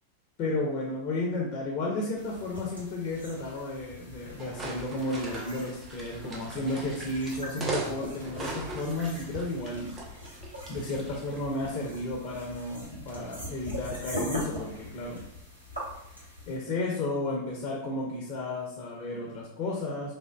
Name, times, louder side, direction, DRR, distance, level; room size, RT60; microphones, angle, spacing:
voice 1, 0.4-10.0 10.7-15.2 16.5-20.1, left 2 dB, 40° left, -2 dB, 0.7 m, -33 dB
sound 1, 2.2-16.6, left 1 dB, 90° right, 1.2 m, -41 dB
sound 2, 4.4-11.4, right 2 dB, 20° right, 0.7 m, -39 dB
3.4 x 2.5 x 2.3 m, 0.75 s
figure-of-eight pair, 90°, 0 cm